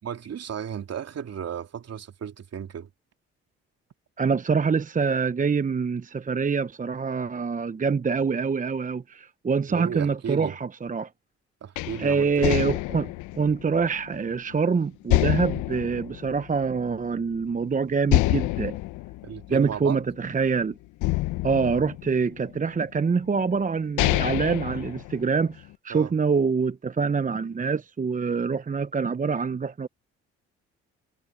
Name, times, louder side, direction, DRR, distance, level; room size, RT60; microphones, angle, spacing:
voice 1, 0.0-2.9 9.7-10.5 11.6-12.6 19.2-20.0 25.9-26.1, right 8 dB, 55° right, 3.3 m, -34 dB
voice 2, 4.2-11.1 12.0-18.8 19.5-20.7 21.4-29.9, right 5 dB, 25° right, 0.8 m, -25 dB
sound 1, 11.8-14.6 15.1-17.0 17.4-17.5 18.1-20.5 21.0-22.6 23.3-23.4 23.8-25.6, left 19 dB, 75° left, 1.0 m, -27 dB
hypercardioid pair, 55°, 30 cm